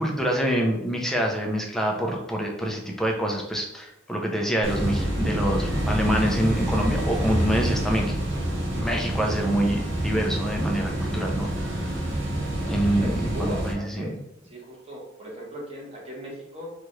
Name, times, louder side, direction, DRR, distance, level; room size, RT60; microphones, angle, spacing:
voice 1, 0.0-8.1 8.7-12.0 12.6-14.1, equal, ahead, 0 dB, 0.5 m, -26 dB
sound 1, 4.6-13.7, right 1 dB, 60° right, 1.1 m, -27 dB
voice 2, 12.6-14.2 14.4-16.7, equal, 30° right, -3 dB, 1.1 m, -38 dB
4.5 x 2.4 x 3.1 m, 0.88 s
head